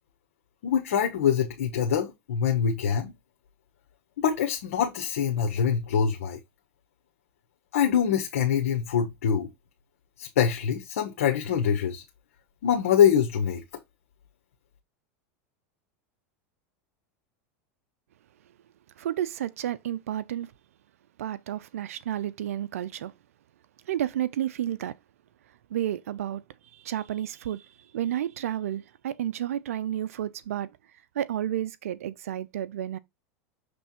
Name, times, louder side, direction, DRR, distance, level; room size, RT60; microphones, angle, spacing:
voice 1, 0.6-3.1 4.2-6.4 7.7-9.5 10.2-12.0 12.6-13.6, left 8 dB, 85° left, 1.3 m, -24 dB
voice 2, 19.0-20.5 21.2-23.1 23.9-25.0 25.7-26.4 26.7-30.7 31.1-33.0, right 11 dB, 90° right, 0.5 m, -31 dB
7.0 x 3.4 x 4.3 m
supercardioid pair, 115°, 7 cm